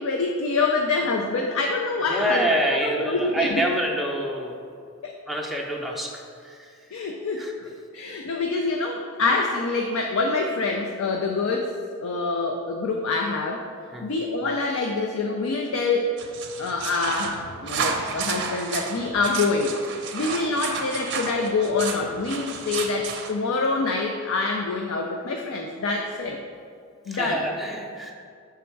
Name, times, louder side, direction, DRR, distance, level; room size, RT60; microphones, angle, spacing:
voice 1, 0.0-3.7 5.0-5.1 6.9-7.5 7.9-11.7 12.0-13.6 14.0-16.1 16.6-19.7 20.1-26.4 27.1-27.5, left 3 dB, 80° left, 2 dB, 0.4 m, -26 dB
voice 2, 2.1-4.6 5.3-6.6 7.4-7.5 13.9-14.1 27.1-28.1, right 1 dB, ahead, -2 dB, 0.6 m, -26 dB
sound 1, 16.2-23.3, right 5 dB, 55° right, 0.5 m, -32 dB
6.2 x 3.4 x 4.5 m, 2.3 s
head